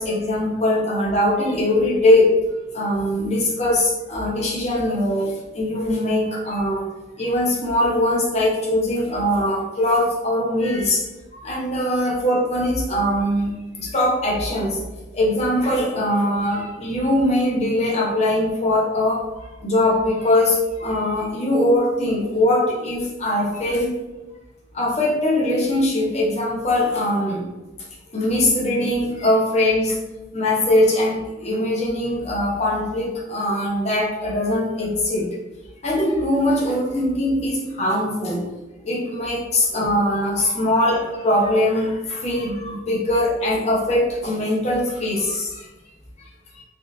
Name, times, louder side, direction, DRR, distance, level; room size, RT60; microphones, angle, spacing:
voice 1, 0.0-2.3 2.7-6.9 7.2-11.0 11.3-14.8 15.1-19.2 19.6-23.9 24.7-27.4 28.1-30.0 30.3-35.3 35.8-38.4 38.8-45.7 46.6-46.7, left 1 dB, 35° left, -3 dB, 0.7 m, -21 dB
3.4 x 2.5 x 2.7 m, 1.1 s
head